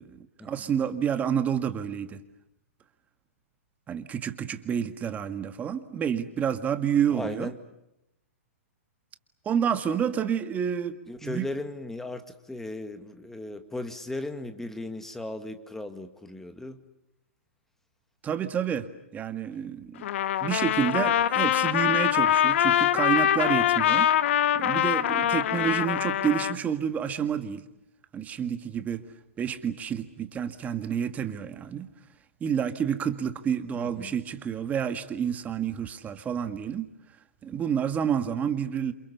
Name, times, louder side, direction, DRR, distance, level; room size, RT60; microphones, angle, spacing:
voice 1, 0.0-2.2 3.9-7.5 9.5-11.0 11.2-11.5 18.2-20.1 20.4-24.1 24.6-27.6 28.1-29.0 29.4-31.9 32.4-36.9 37.4-38.9, right 8 dB, 20° right, 9 dB, 1.9 m, -29 dB
voice 2, 7.1-7.5 11.1-16.8 33.7-34.1, left 2 dB, 5° left, 8 dB, 2.2 m, -37 dB
Trumpet, 20.0-26.6, left 11 dB, 60° left, 1.2 m, -24 dB
29.0 x 28.0 x 7.0 m, 0.84 s
hypercardioid pair, 130°, 8 cm